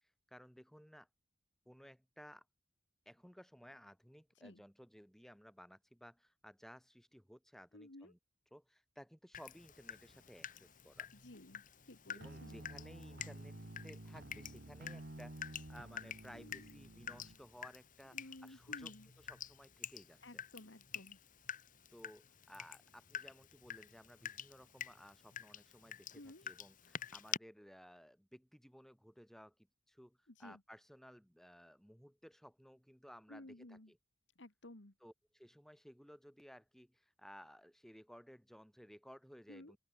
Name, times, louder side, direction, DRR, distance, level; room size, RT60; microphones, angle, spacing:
voice 1, 0.3-1.1 1.6-2.4 3.0-8.2 8.5-11.1 12.1-20.2 21.9-29.5 29.9-34.0 35.0-39.8, equal, ahead, 6.7 m, -58 dB
voice 2, 7.7-8.1 11.1-12.6 16.3-16.8 18.1-19.1 20.2-21.2 26.1-26.5 30.3-30.6 33.3-33.9 34.4-34.9 39.5-39.7, left 1 dB, 65° left, 2.1 m, -55 dB
Water tap faucet / Drip, 9.3-27.4, left 8 dB, 45° left, 2.3 m, -49 dB
sound 1, 12.2-17.4, right 1 dB, 60° right, 1.8 m, -51 dB
open air
head